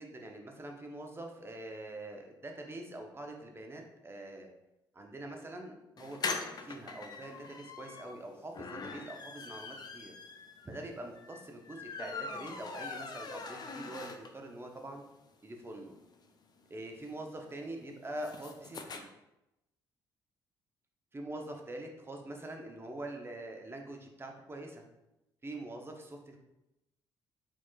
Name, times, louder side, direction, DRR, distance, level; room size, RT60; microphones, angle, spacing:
voice 1, 0.0-4.5 4.9-10.1 10.6-15.0 15.4-15.9 16.7-19.1 21.1-24.9 25.4-26.4, right 1 dB, 20° right, 2 dB, 0.7 m, -44 dB
sound 1, 6.0-14.6 14.9-15.0 15.3-15.4 15.6-19.0, left 4 dB, 35° left, 0.5 m, -42 dB
4.2 x 3.0 x 2.3 m, 0.91 s
hypercardioid pair, 45°, 12 cm